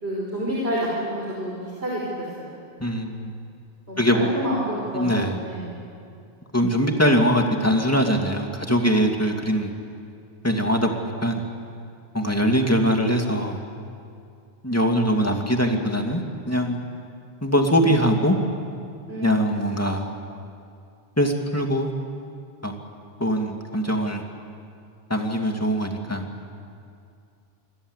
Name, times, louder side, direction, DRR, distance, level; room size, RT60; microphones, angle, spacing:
voice 1, 0.0-2.5 3.9-5.1 5.4-5.8 19.1-19.6, right 1 dB, 70° right, -5 dB, 5.4 m, -29 dB
voice 2, 2.8-3.3 4.0-4.3 4.9-5.4 6.5-9.7 10.4-10.9 11.2-11.4 12.1-13.6 14.6-16.9 17.4-18.4 19.2-20.1 21.2-21.9 22.6-22.8 23.2-24.2 25.1-26.2, equal, 15° left, 2 dB, 2.6 m, -22 dB
26.5 x 25.0 x 8.3 m, 2.4 s
omnidirectional pair, 1.1 m